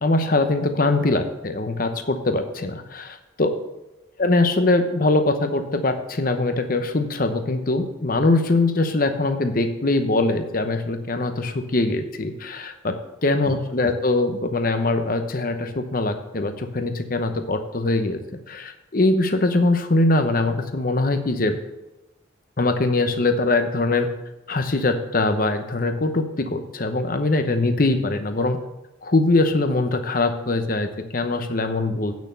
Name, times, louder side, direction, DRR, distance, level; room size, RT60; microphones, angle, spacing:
voice 1, 0.0-3.5 4.2-13.0 13.2-18.2 18.5-21.5 22.6-24.1 24.5-28.6 29.0-32.1, left 2 dB, 45° left, 8 dB, 0.9 m, -22 dB
8.9 x 6.2 x 6.9 m, 1.0 s
head